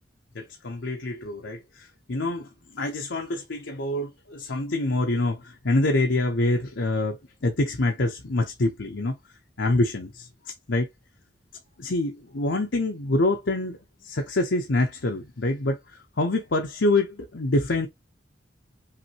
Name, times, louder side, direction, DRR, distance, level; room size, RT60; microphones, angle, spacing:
voice 1, 0.3-9.2 9.6-10.9 11.8-17.9, left 2 dB, 90° left, 0.8 m, -26 dB
5.7 x 2.7 x 2.9 m
head